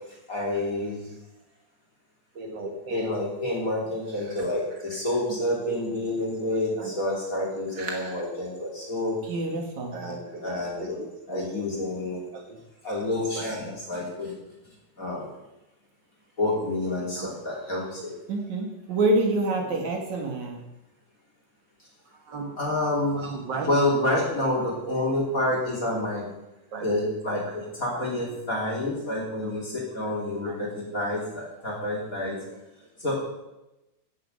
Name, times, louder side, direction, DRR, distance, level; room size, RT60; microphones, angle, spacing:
voice 1, 0.3-1.0 2.8-9.2 10.4-12.2 12.8-14.3 15.0-15.3 16.4-18.1 22.6-23.2 23.6-26.3 26.8-27.4 27.7-32.4 33.0-33.2, left 1 dB, 25° left, -3 dB, 3.0 m, -28 dB
voice 2, 2.4-3.1 6.4-6.5 6.8-6.9 7.8-8.1 9.9-10.2 10.8-10.9 11.3-11.5 13.4-13.5 17.2-17.3 22.3-22.5 23.2-23.7 26.7-26.8 29.4-29.5 30.4-30.5, right 4 dB, 75° right, 2 dB, 1.0 m, -35 dB
voice 3, 9.2-10.0 18.3-20.6, right 2 dB, 60° right, 1 dB, 3.0 m, -26 dB
15.5 x 6.6 x 6.7 m, 0.96 s
omnidirectional pair, 4.1 m